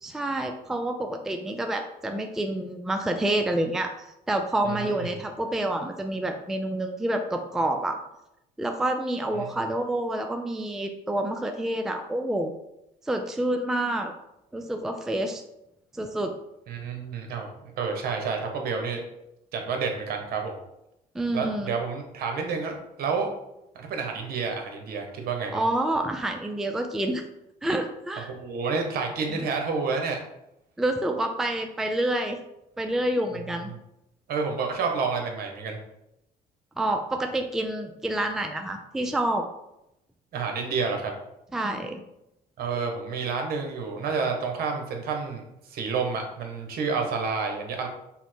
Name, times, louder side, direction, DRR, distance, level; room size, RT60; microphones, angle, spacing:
voice 1, 0.0-3.9 4.3-8.0 8.6-12.5 13.1-14.1 14.5-15.4 15.9-16.3 21.1-21.7 25.5-27.2 27.6-28.3 29.3-29.4 30.8-32.4 32.8-33.7 36.8-39.4 41.5-42.0, right 1 dB, 5° right, 4 dB, 0.4 m, -28 dB
voice 2, 4.6-5.1 9.4-9.5 16.7-19.0 19.5-20.6 21.3-23.3 23.7-25.6 28.2-30.2 34.3-35.8 40.3-41.1 42.6-45.4 45.7-47.9, right 5 dB, 65° right, 3 dB, 1.0 m, -29 dB
5.6 x 2.1 x 4.4 m, 0.85 s
cardioid pair, 110°, 17 cm